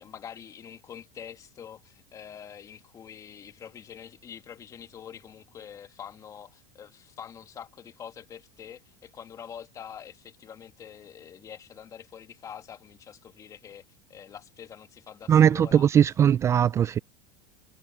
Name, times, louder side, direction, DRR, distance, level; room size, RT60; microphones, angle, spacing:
voice 1, 0.0-15.9, left 8 dB, 30° left, 1.8 m, -45 dB
voice 2, 15.3-17.0, right 9 dB, 25° right, 0.4 m, -20 dB
supercardioid pair, 115°, 11 cm